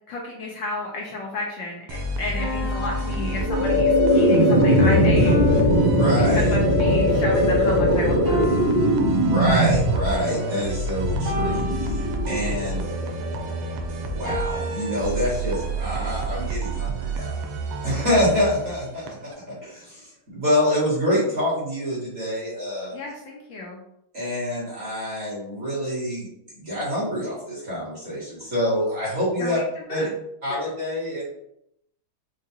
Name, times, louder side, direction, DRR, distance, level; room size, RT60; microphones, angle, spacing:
voice 1, 0.1-5.4 6.3-8.4 22.9-23.8 29.4-29.6 29.9-30.1, left 2 dB, 70° left, -1 dB, 1.2 m, -32 dB
sound 1, 1.9-19.3, right 2 dB, 90° right, 1.5 m, -30 dB
sound 2, 2.4-4.1 5.2-6.9 8.2-9.9 11.2-12.7 14.2-15.0, left 3 dB, 70° right, 2.3 m, -33 dB
sound 3, 3.1-14.2, equal, 45° left, 1.1 m, -21 dB
voice 2, 5.9-6.6 9.1-12.8 14.0-17.4 17.8-22.9 24.1-26.3 26.6-29.6 29.9-30.0 30.4-31.2, left 1 dB, 35° right, -8 dB, 1.7 m, -26 dB
4.7 x 2.2 x 2.8 m, 0.76 s
omnidirectional pair, 2.3 m